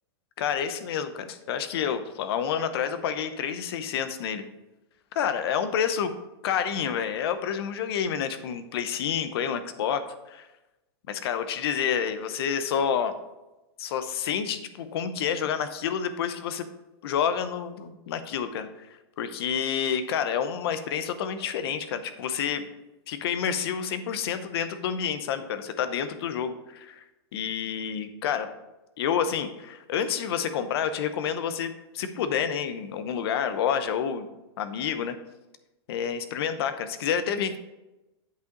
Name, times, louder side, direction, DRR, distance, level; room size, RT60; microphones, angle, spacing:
voice 1, 0.4-4.4 5.1-6.1 6.4-10.0 10.3-10.5 11.1-13.1 13.8-16.7 17.0-22.6 23.1-27.0 27.3-28.5 29.0-34.3 34.6-35.2 35.9-37.6, left 8 dB, 60° left, 10 dB, 0.8 m, -29 dB
8.0 x 5.6 x 3.9 m, 0.99 s
supercardioid pair, 160°, 14 cm